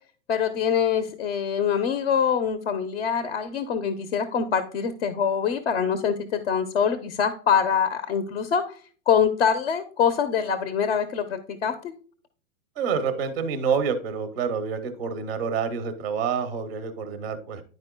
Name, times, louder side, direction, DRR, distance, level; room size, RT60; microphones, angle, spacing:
voice 1, 0.3-8.8 9.1-11.9, left 7 dB, 50° left, 10 dB, 0.8 m, -24 dB
voice 2, 12.8-17.6, right 6 dB, 15° right, 9 dB, 0.5 m, -27 dB
10.5 x 4.8 x 2.2 m, 0.41 s
supercardioid pair, 175°, 43 cm